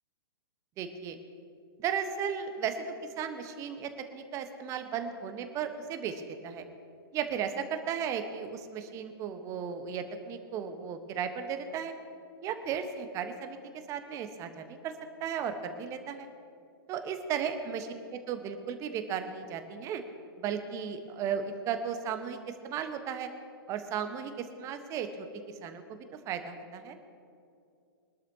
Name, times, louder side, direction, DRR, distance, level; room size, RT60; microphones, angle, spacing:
voice 1, 0.8-1.2 1.8-6.6 7.1-11.9 12.4-13.6 13.9-14.9 15.2-16.3 16.9-20.0 20.4-22.4 22.6-23.3 23.7-25.3 25.6-26.0 26.3-26.9, right 7 dB, 25° right, 8 dB, 1.2 m, -35 dB
23.5 x 12.0 x 2.9 m, 2.5 s
figure-of-eight pair, 115°, 13 cm